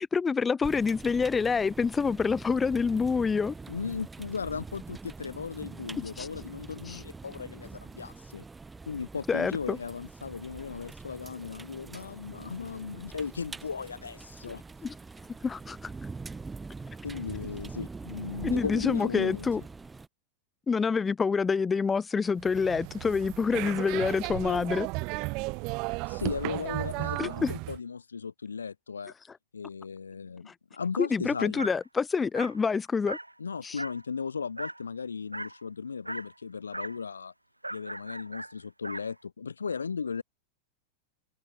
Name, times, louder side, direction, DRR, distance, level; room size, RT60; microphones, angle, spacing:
voice 1, 0.0-3.5 6.2-6.3 6.9-7.0 9.3-9.8 14.8-14.9 15.4-15.9 18.4-19.6 20.7-24.9 27.2-27.5 31.0-33.2 33.6-33.8, left 5 dB, 15° left, 0.7 m, -27 dB
sound 1, 0.6-20.1, right 4 dB, 10° right, 3.1 m, -44 dB
voice 2, 3.7-8.4 8.9-14.6 17.0-19.5 26.1-29.1 29.5-31.7 33.4-37.3 37.7-40.2, left 5 dB, 75° left, 0.7 m, -36 dB
sound 2, 22.4-27.8, right 27 dB, 40° right, 2.4 m, -34 dB
Dog, 31.6-31.8 32.3-32.6 33.1-33.3 33.8-34.1 34.6-34.8 35.3-35.6 36.1-36.3 36.7-37.0 37.6-39.1, right 1 dB, 85° right, 0.7 m, -38 dB
figure-of-eight pair, 90°, 0 cm